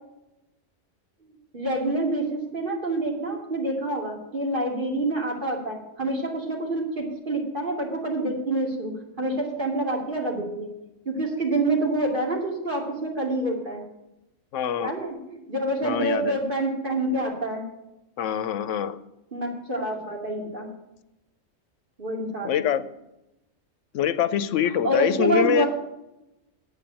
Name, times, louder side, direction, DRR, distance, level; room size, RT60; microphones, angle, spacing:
voice 1, 1.5-10.7 11.0-13.8 14.8-17.6 19.3-20.7 22.0-22.6 24.6-25.7, right 2 dB, 45° right, -1 dB, 2.9 m, -27 dB
voice 2, 14.5-15.0 15.8-16.4 18.2-19.0 22.4-22.8 23.9-25.6, left 9 dB, 90° left, 14 dB, 1.0 m, -24 dB
9.0 x 8.7 x 8.8 m, 0.92 s
omnidirectional pair, 1.2 m